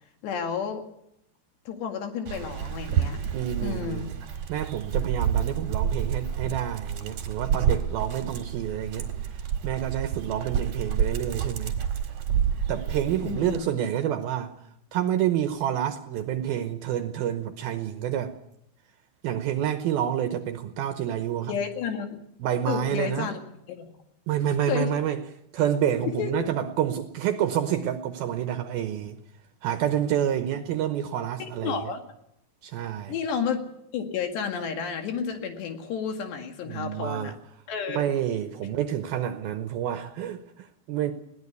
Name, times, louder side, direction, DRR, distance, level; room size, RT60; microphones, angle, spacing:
voice 1, 0.2-0.8 1.7-3.2 3.6-4.2 8.2-8.3 13.2-13.7 21.5-22.2 22.7-23.4 23.7-23.9 24.6-24.9 26.0-26.5 31.4-32.0 33.1-37.3 37.7-38.0, left 7 dB, 70° left, 5 dB, 4.1 m, -31 dB
Dog, 2.3-13.6, right 8 dB, 50° right, 2.5 m, -29 dB
voice 2, 3.3-4.1 4.5-9.1 9.6-11.8 12.7-14.5 14.9-18.3 19.2-21.6 22.4-23.3 24.3-25.2 25.5-29.2 29.6-31.8 32.6-33.1 36.6-37.3 37.9-41.1, right 10 dB, 75° right, 8 dB, 2.4 m, -28 dB
21.0 x 17.0 x 8.2 m, 0.76 s
omnidirectional pair, 5.2 m